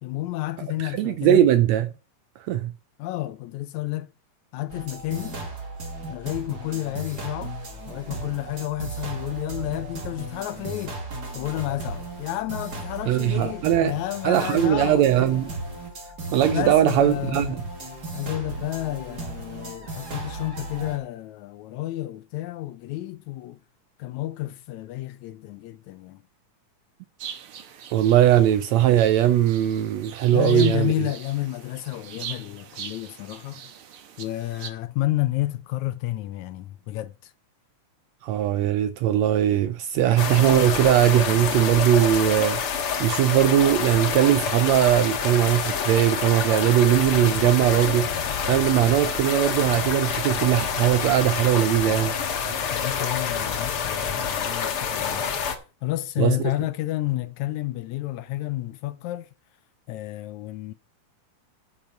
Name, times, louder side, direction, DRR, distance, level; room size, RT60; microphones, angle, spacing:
voice 1, 0.0-1.5 3.0-4.1 4.5-5.4 6.1-7.6 7.9-11.0 11.3-15.4 16.5-17.6 18.1-23.6 24.0-26.2 30.3-33.6 34.2-37.3 52.7-59.3 59.9-60.7, left 16 dB, 80° left, 1.8 m, -30 dB
voice 2, 0.8-1.9 2.5-2.7 13.1-13.9 14.2-15.5 16.3-17.6 27.9-31.1 38.2-52.2 56.2-56.5, right 11 dB, 80° right, 1.6 m, -20 dB
sound 1, 4.7-21.0, right 2 dB, 35° right, 2.4 m, -36 dB
sound 2, 27.2-34.7, right 8 dB, 60° right, 1.5 m, -41 dB
sound 3, 40.2-55.6, left 7 dB, 55° left, 1.9 m, -27 dB
9.6 x 6.7 x 5.7 m
omnidirectional pair, 3.6 m